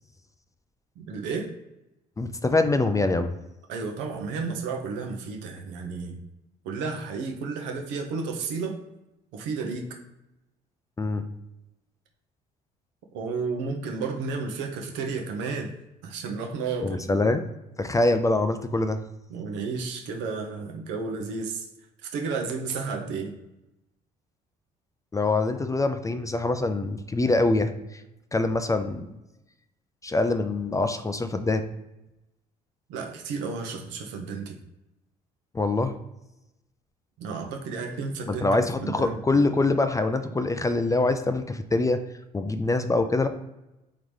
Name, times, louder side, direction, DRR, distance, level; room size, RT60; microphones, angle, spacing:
voice 1, 1.0-1.5 3.7-6.2 6.6-8.8 9.3-9.9 13.1-15.7 16.0-17.2 19.3-21.7 22.0-23.3 32.9-34.5 37.2-39.2, right 4 dB, 65° right, 2 dB, 0.8 m, -32 dB
voice 2, 2.2-3.3 11.0-11.2 16.8-17.4 17.8-19.0 25.1-28.0 28.3-29.2 30.0-31.6 35.5-35.9 38.3-42.0 42.3-43.3, left 2 dB, 15° left, 9 dB, 0.4 m, -24 dB
3.8 x 3.5 x 3.2 m, 0.93 s
hypercardioid pair, 55°, 20 cm